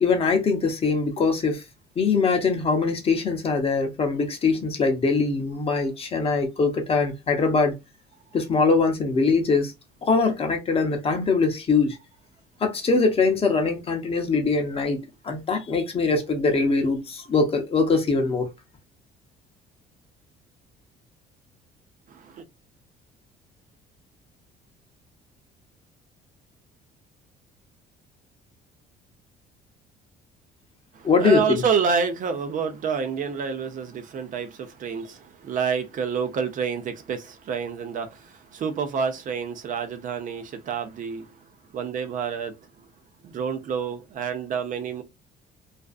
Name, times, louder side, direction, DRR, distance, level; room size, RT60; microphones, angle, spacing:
voice 1, 0.0-1.6 2.0-7.7 8.3-9.7 10.0-12.0 12.6-18.5 31.0-31.6, left 4 dB, 35° left, 0.7 m, -22 dB
voice 2, 22.1-22.4 30.9-41.3 41.7-42.6 43.2-45.0, right 6 dB, 50° right, 0.6 m, -28 dB
2.5 x 2.3 x 2.3 m
cardioid pair, 110°, 17 cm